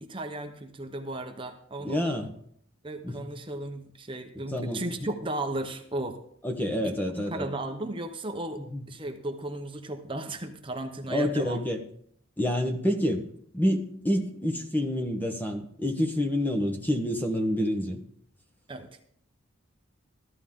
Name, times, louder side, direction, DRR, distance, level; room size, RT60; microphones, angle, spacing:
voice 1, 0.0-2.2 2.8-6.2 6.8-8.6 8.9-11.6 18.7-19.0, right 1 dB, 25° right, 5 dB, 0.9 m, -35 dB
voice 2, 1.8-2.3 3.0-3.2 4.3-4.8 6.4-7.5 8.6-8.8 11.1-11.8 12.4-13.3 13.5-18.0, left 1 dB, 10° left, 4 dB, 1.0 m, -28 dB
14.0 x 11.5 x 3.7 m, 0.66 s
head